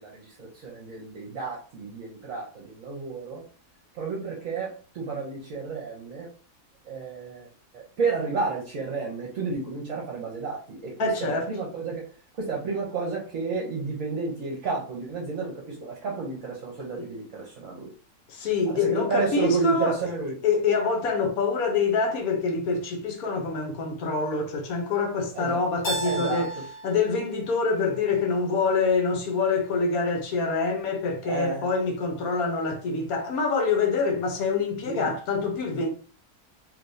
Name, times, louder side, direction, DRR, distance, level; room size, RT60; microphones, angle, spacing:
voice 1, 0.0-3.4 3.9-6.3 6.8-7.5 7.7-17.9 18.7-20.3 25.3-25.6 26.0-26.5 31.2-31.7 34.8-35.1, right 4 dB, 60° right, 1.2 m, -31 dB
voice 2, 11.0-11.5 17.0-17.1 18.3-20.0 20.4-26.5 26.8-35.9, left 4 dB, 70° left, 1.2 m, -25 dB
Keyboard (musical), 25.8-28.7, right 1 dB, 50° left, 1.3 m, -35 dB
3.4 x 3.0 x 2.6 m
omnidirectional pair, 1.6 m